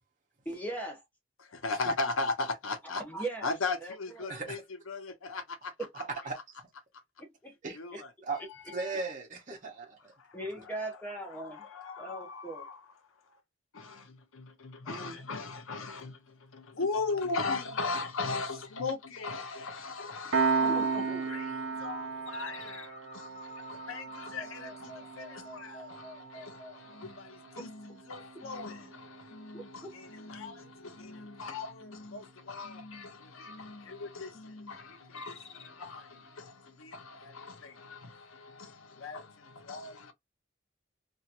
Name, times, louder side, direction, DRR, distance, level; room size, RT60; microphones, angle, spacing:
voice 1, 0.4-1.0 3.0-3.5 3.8-4.3 5.8-5.9 7.2-7.5 7.9-8.0 10.3-11.6 12.0-12.7 14.8-15.2 20.6-21.3 28.3-28.4 29.5-29.9, right 2 dB, 10° left, 0.7 m, -39 dB
voice 2, 1.4-3.0 3.4-4.6 4.9-5.7 7.7-9.0 10.2-10.9 11.2-12.9 13.7-40.1, left 3 dB, 90° left, 0.7 m, -38 dB
voice 3, 8.7-10.1, right 3 dB, 40° right, 0.8 m, -37 dB
Piano, 20.3-31.4, right 4 dB, 85° right, 0.6 m, -36 dB
sound 1, 22.3-27.2 27.6-28.0 28.4-28.9 29.3-29.7 30.1-30.6 31.0-31.5 31.8-32.3 32.6-33.1 33.5-34.0 34.3-34.8 35.2-35.7, left 2 dB, 30° left, 0.4 m, -49 dB
2.9 x 2.4 x 2.5 m
head